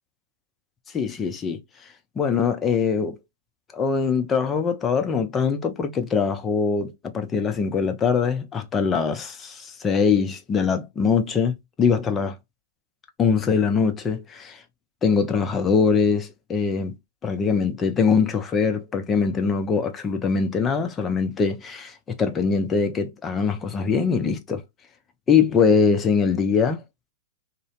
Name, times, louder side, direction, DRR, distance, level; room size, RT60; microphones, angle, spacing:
voice 1, 0.9-1.6 2.2-3.2 3.7-12.4 13.2-14.6 15.0-17.0 17.2-24.6 25.3-26.8, left 5 dB, 20° left, 0.6 m, -22 dB
2.6 x 2.1 x 2.4 m
hypercardioid pair, 110°, 0 cm